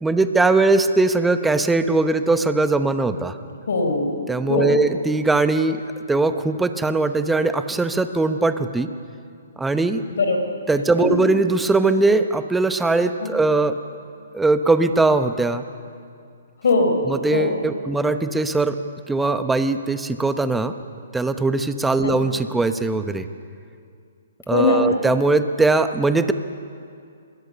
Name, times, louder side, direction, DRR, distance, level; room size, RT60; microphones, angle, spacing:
voice 1, 0.0-3.4 4.3-5.8 6.1-8.9 9.6-10.0 10.7-13.7 14.3-15.6 17.1-18.8 19.1-20.7 21.1-23.3 24.5-26.3, right 3 dB, 5° right, 9 dB, 0.9 m, -20 dB
voice 2, 3.7-4.1 4.5-4.7 10.1-10.4 11.0-11.1 13.2-13.3 16.6-17.0 17.3-17.5 22.0-22.2 24.5-24.8, left 3 dB, 75° left, 4 dB, 5.0 m, -20 dB
27.0 x 21.0 x 6.9 m, 2.4 s
hypercardioid pair, 150°, 0 cm